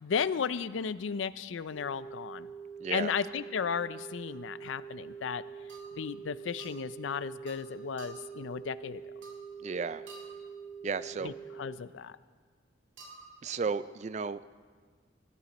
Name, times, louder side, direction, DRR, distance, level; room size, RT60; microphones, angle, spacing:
voice 1, 0.0-2.5 2.9-5.4 6.0-9.0 11.2-12.2, left 6 dB, 85° left, 16 dB, 0.5 m, -34 dB
sound 1, 1.7-11.7, right 6 dB, 20° right, 3.7 m, -45 dB
voice 2, 2.8-3.1 9.6-10.1 10.8-11.3 13.4-14.4, right 5 dB, 35° right, 15 dB, 0.4 m, -33 dB
sound 2, 4.3-4.5 5.7-6.1 6.6-6.8 7.5-7.7 8.0-8.4 9.2-9.6 10.1-10.5 13.0-13.4, right 4 dB, 85° right, 2.4 m, -51 dB
19.0 x 12.5 x 4.2 m, 1.5 s
head